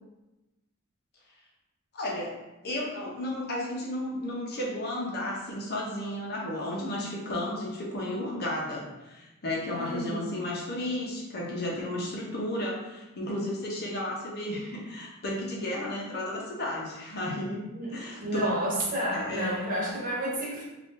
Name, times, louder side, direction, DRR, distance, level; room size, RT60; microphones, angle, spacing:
voice 1, 1.9-2.3 2.6-17.6 17.9-18.4 19.1-19.5, left 1 dB, 50° left, -3 dB, 0.8 m, -33 dB
voice 2, 9.7-10.3 17.7-20.6, equal, 40° right, -4 dB, 0.8 m, -30 dB
2.6 x 2.5 x 3.7 m, 1.0 s
head